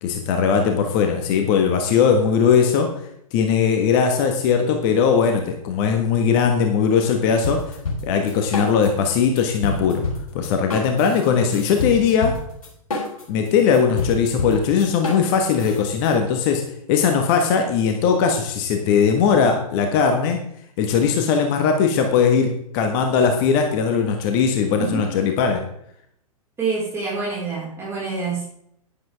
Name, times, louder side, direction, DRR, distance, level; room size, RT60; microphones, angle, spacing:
voice 1, 0.0-2.9 3.3-7.7 8.0-10.0 10.3-12.4 13.3-16.6 16.9-20.4 20.8-25.6, left 6 dB, 35° left, 4 dB, 1.5 m, -19 dB
sound 1, 7.4-9.1 9.4-16.1, left 2 dB, 65° left, 4.7 m, -28 dB
voice 2, 26.6-28.4, right 4 dB, 15° right, -7 dB, 4.9 m, -26 dB
11.0 x 11.0 x 3.5 m, 0.71 s
figure-of-eight pair, 110°, 19 cm